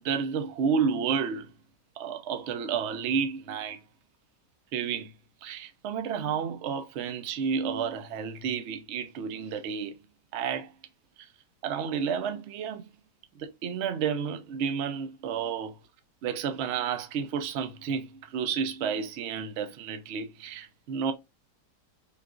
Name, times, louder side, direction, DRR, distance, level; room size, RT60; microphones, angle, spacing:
voice 1, 0.0-1.5 2.0-3.8 4.7-5.1 5.4-10.0 10.3-10.7 11.6-12.9 13.4-15.7 16.2-21.1, right 6 dB, 75° right, 0.6 m, -31 dB
3.6 x 2.4 x 2.3 m
omnidirectional pair, 1.8 m